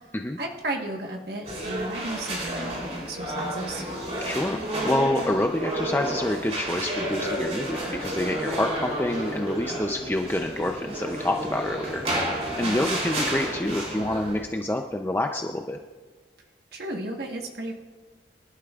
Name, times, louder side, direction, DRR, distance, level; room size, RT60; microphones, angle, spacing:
voice 1, 0.4-3.8 12.6-12.9 16.7-17.7, right 1 dB, 60° right, 2 dB, 1.3 m, -34 dB
sound 1, 1.4-14.4, right 1 dB, 35° right, 3.2 m, -31 dB
voice 2, 4.2-12.0 12.6-15.8, left 1 dB, 10° left, 3 dB, 0.5 m, -27 dB
24.0 x 11.5 x 2.4 m, 1.3 s
head